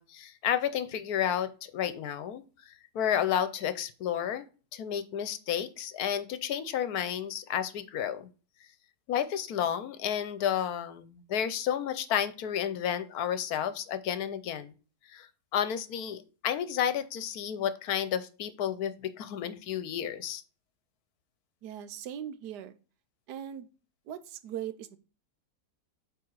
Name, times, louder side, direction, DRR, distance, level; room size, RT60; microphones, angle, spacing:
voice 1, 0.0-4.5 4.7-8.3 9.1-14.7 15.1-15.3 15.5-20.4, left 9 dB, 70° left, 13 dB, 1.1 m, -31 dB
voice 2, 21.6-22.8 23.3-23.7 24.1-25.0, right 10 dB, 85° right, 12 dB, 1.3 m, -39 dB
8.6 x 3.5 x 4.6 m, 0.35 s
omnidirectional pair, 1.7 m